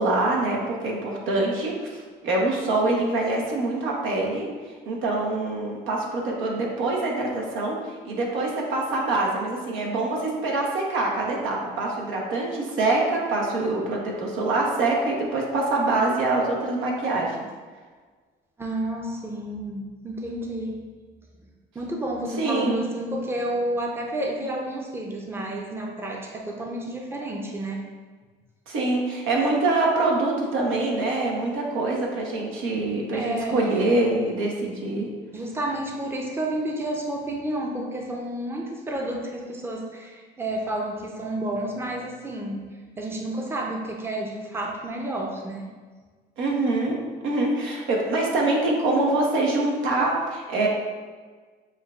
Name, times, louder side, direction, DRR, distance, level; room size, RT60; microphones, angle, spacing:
voice 1, 0.0-4.5 4.9-17.4 22.4-22.9 28.7-35.1 46.4-47.0 47.2-50.7, right 2 dB, 75° right, -1 dB, 0.9 m, -25 dB
voice 2, 18.6-20.8 21.7-27.8 32.7-32.8 33.1-33.9 35.3-42.7 43.0-45.7, right 1 dB, 10° right, 0 dB, 0.6 m, -30 dB
6.9 x 2.3 x 2.4 m, 1.5 s
supercardioid pair, 75°, 21 cm